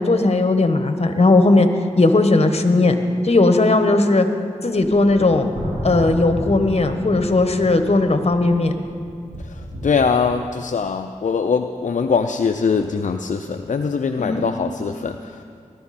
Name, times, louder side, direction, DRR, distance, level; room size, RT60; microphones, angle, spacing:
voice 1, 0.0-1.7 2.0-2.9 3.2-4.3 4.6-5.5 5.8-8.7 14.2-14.6, left 2 dB, 50° left, 7 dB, 1.2 m, -17 dB
sound 1, 4.7-9.9, equal, 90° right, 4.1 m, -32 dB
voice 2, 9.4-15.4, left 5 dB, 70° left, 6 dB, 0.5 m, -22 dB
20.5 x 12.5 x 4.3 m, 2.4 s
cardioid pair, 50°, 13 cm